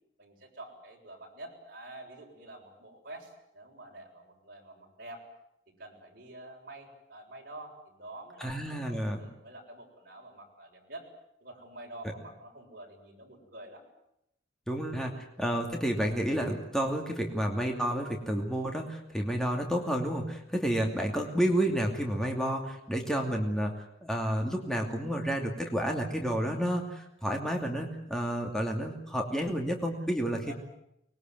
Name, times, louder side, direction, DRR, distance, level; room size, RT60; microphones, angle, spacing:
voice 1, 0.2-5.2 5.7-11.1 11.4-13.9 30.4-30.5, right 2 dB, 50° right, -1 dB, 6.9 m, -48 dB
voice 2, 8.4-9.2 14.7-23.7 24.0-30.5, equal, 5° left, 1 dB, 2.6 m, -30 dB
24.5 x 21.0 x 9.3 m, 0.79 s
head